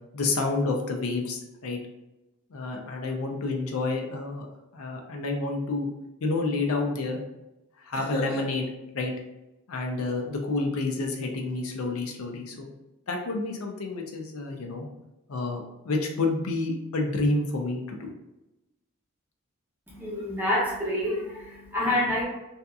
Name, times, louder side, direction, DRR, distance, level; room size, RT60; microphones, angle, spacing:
voice 1, 0.1-1.8 2.5-4.5 4.7-5.9 6.2-7.2 7.8-8.7 8.9-9.1 9.7-12.7 13.1-14.9 15.3-18.1, left 3 dB, 80° left, 2 dB, 0.5 m, -29 dB
voice 2, 19.9-22.2, left 1 dB, 10° right, -6 dB, 0.7 m, -27 dB
2.7 x 2.4 x 2.3 m, 0.97 s
head